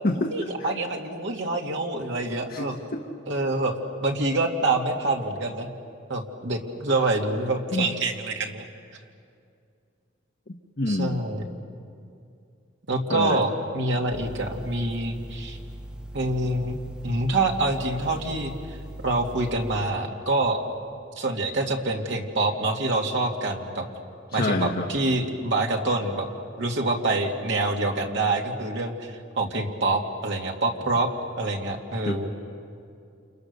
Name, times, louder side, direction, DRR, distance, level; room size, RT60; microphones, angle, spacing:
voice 1, 0.3-2.7 3.3-3.8 4.0-5.7 6.1-8.6 10.9-11.4 12.9-15.6 16.1-16.8 17.0-18.5 19.0-20.6 21.2-23.8 24.3-26.3 26.6-31.1 31.4-32.3, right 2 dB, 65° right, 1 dB, 2.4 m, -26 dB
voice 2, 10.8-11.2 13.1-13.4 24.3-24.9 32.0-32.3, left 2 dB, 50° left, 2 dB, 1.3 m, -26 dB
sound 1, 14.1-19.8, right 1 dB, 5° right, 0.9 m, -40 dB
30.0 x 28.5 x 6.8 m, 2.5 s
head